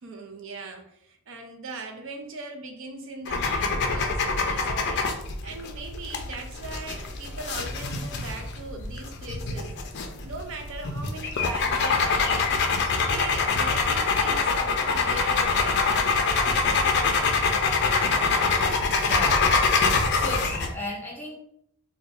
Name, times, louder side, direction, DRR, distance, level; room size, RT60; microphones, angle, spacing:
voice 1, 0.0-9.8 10.2-12.6 13.0-17.3, right 2 dB, 60° right, 4 dB, 0.4 m, -40 dB
sound 1, 3.3-20.7, left 4 dB, 50° left, 0.4 m, -25 dB
voice 2, 19.0-19.5 20.1-21.4, left 1 dB, 10° left, -2 dB, 0.6 m, -34 dB
2.6 x 2.2 x 3.7 m, 0.73 s
head